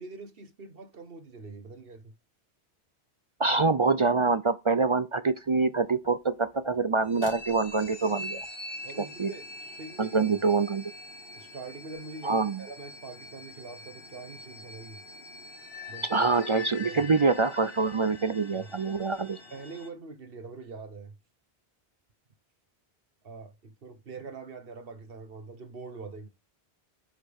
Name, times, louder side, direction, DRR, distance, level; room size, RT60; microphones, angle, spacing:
voice 1, 0.0-2.1 3.5-3.6 8.8-10.4 11.3-15.0 15.9-16.3 16.6-17.0 18.5-18.7 19.5-21.2 23.2-26.3, right 4 dB, 60° right, 1.4 m, -44 dB
voice 2, 3.4-8.5 9.0-9.3 10.0-10.8 12.2-12.6 16.1-19.4, right 4 dB, 45° right, 0.4 m, -25 dB
sound 1, 5.4-8.4 11.9-12.0, equal, 20° left, 2.5 m, -52 dB
sound 2, 7.1-19.9, left 2 dB, 60° left, 2.3 m, -44 dB
9.7 x 5.8 x 3.5 m
omnidirectional pair, 1.1 m